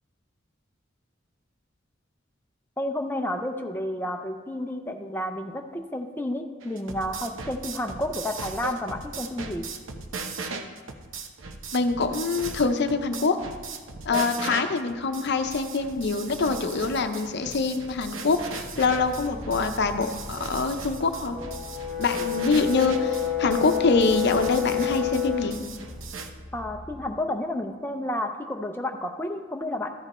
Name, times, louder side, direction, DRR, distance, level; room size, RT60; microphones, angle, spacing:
voice 1, 2.8-9.6 14.1-14.3 26.5-29.9, left 1 dB, 10° left, 3 dB, 0.5 m, -31 dB
sound 1, 6.6-26.3, right 4 dB, 75° right, 0.8 m, -38 dB
voice 2, 11.7-13.4 14.0-21.4 22.0-25.6, left 3 dB, 60° left, 7 dB, 0.7 m, -25 dB
Boat Water vehicle, 18.4-27.2, equal, 40° right, 2.3 m, -43 dB
Brass instrument, 21.3-25.6, left 12 dB, 60° right, 2.5 m, -28 dB
14.0 x 5.2 x 4.2 m, 1.5 s
head